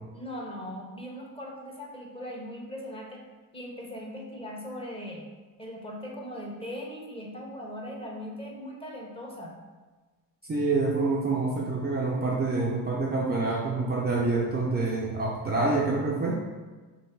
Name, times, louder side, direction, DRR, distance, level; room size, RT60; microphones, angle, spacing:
voice 1, 0.1-3.2 3.5-5.2 5.6-9.5, equal, 15° left, -1 dB, 0.9 m, -39 dB
voice 2, 10.5-16.4, right 3 dB, 25° right, -3 dB, 0.5 m, -27 dB
3.1 x 2.8 x 4.4 m, 1.3 s
supercardioid pair, 85°, 43 cm